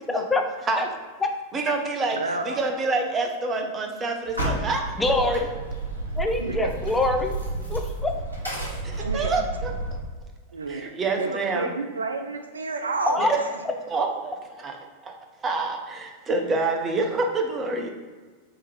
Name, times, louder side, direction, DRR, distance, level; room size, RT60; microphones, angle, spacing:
voice 1, 0.1-0.4 0.8-0.9 1.2-1.3 5.0-5.5 6.2-7.4 7.7-8.1 13.1-13.3, left 2 dB, 10° left, 4 dB, 0.4 m, -24 dB
voice 2, 1.5-2.2 2.4-5.4 8.9-9.7 10.7-11.7 13.2-13.3 13.9-14.8 15.0-15.2 15.4-17.9, right 3 dB, 25° right, 3 dB, 0.7 m, -27 dB
voice 3, 2.2-2.6 6.4-6.7 9.0-9.5 10.5-10.9 11.2-13.5, right 3 dB, 75° right, 5 dB, 0.4 m, -30 dB
sound 1, 4.3-10.0, right 2 dB, 85° left, 1.1 m, -31 dB
3.7 x 2.9 x 4.7 m, 1.4 s
figure-of-eight pair, 90°, 0 cm